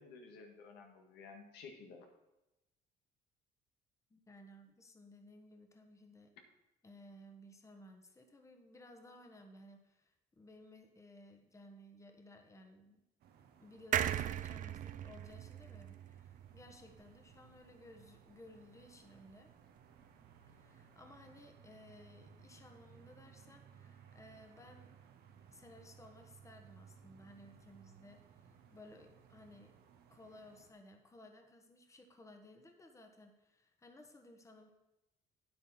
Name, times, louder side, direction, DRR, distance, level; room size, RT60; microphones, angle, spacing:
voice 1, 0.0-2.1, left 4 dB, 85° left, 3 dB, 1.7 m, -53 dB
voice 2, 4.1-6.3 6.8-13.0 13.6-19.5 20.5-24.9 25.5-29.7 30.1-34.7, left 1 dB, 15° left, 4 dB, 1.2 m, -58 dB
sound 1, 13.2-30.7, right 7 dB, 75° right, 1.1 m, -61 dB
sound 2, 13.9-17.4 17.8-17.9 18.1-18.2, right 11 dB, 50° right, 0.5 m, -38 dB
9.3 x 8.7 x 4.3 m, 0.97 s
cardioid pair, 110°, 17 cm